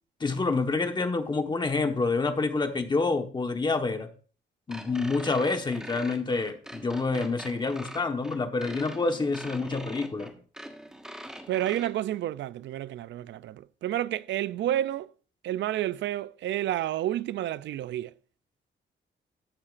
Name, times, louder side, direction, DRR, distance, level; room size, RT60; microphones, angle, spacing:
voice 1, 0.2-4.1 4.7-10.3, left 3 dB, 25° left, 1.2 m, -28 dB
sound 1, 4.7-11.9, equal, 5° right, 1.4 m, -42 dB
voice 2, 11.5-15.1 15.4-18.1, right 13 dB, 70° right, 0.4 m, -30 dB
14.5 x 8.6 x 2.5 m
cardioid pair, 145°, 19 cm